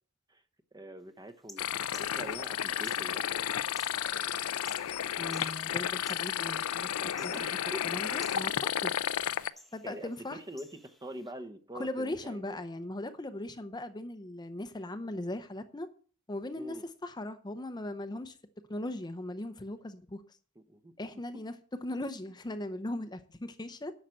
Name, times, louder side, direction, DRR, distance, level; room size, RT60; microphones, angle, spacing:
voice 1, 0.7-3.5 7.2-7.8 9.8-10.7 11.0-12.6 16.6-16.8 20.6-20.9, right 1 dB, 20° right, 0.9 m, -44 dB
sound 1, 1.3-11.3, left 1 dB, ahead, 1.2 m, -57 dB
sound 2, 1.6-9.5, left 10 dB, 85° left, 0.5 m, -32 dB
voice 2, 5.2-7.3 7.8-8.9 9.7-10.4 11.8-15.9 16.3-18.4 18.7-20.2 21.0-21.5 21.8-23.9, left 1 dB, 20° left, 0.7 m, -38 dB
10.0 x 6.6 x 7.5 m
head